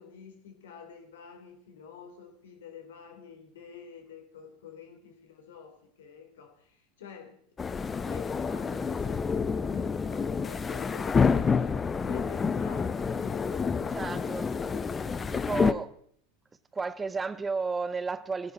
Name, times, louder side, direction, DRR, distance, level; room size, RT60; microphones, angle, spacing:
voice 1, 0.0-7.4 7.8-11.4 12.0-15.8, left 7 dB, 65° left, 3.9 m, -48 dB
sound 1, 7.6-15.7, left 5 dB, 20° left, 0.9 m, -28 dB
voice 2, 13.9-14.4 15.3-15.9 16.7-18.5, right 4 dB, 15° right, 0.7 m, -32 dB
19.5 x 15.5 x 4.3 m
figure-of-eight pair, 80°, 0 cm